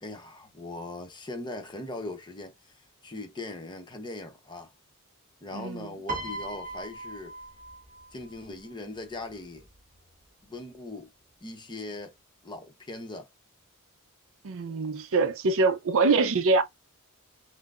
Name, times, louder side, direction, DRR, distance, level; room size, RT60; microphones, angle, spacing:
voice 1, 0.0-4.7 5.4-7.3 8.1-9.7 10.4-11.1 11.4-12.1 12.4-13.3, left 2 dB, 20° left, 0.8 m, -40 dB
voice 2, 5.5-5.9 14.4-16.6, right 3 dB, 65° right, 0.5 m, -24 dB
Piano, 6.1-8.4 9.5-9.7, right 2 dB, 40° right, 1.3 m, -38 dB
5.7 x 2.0 x 2.4 m
head